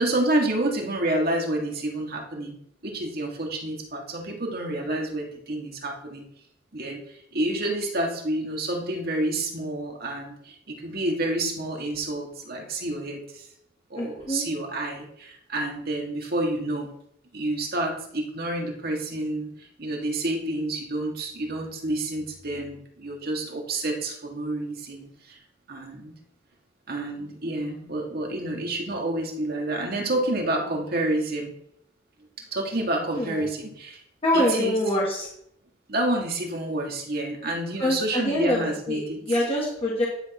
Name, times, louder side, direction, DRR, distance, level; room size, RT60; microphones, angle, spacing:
voice 1, 0.0-2.6 2.8-6.2 6.7-7.0 7.3-13.5 13.9-16.9 17.3-25.4 25.7-26.2 26.9-31.5 32.5-34.0 34.3-34.8 35.9-39.2, right 1 dB, 55° right, 1 dB, 1.7 m, -29 dB
voice 2, 14.0-14.5 33.2-33.4 34.2-35.3 37.8-39.0 39.3-40.1, left 1 dB, 30° left, -3 dB, 1.6 m, -25 dB
10.5 x 3.6 x 5.9 m, 0.71 s
head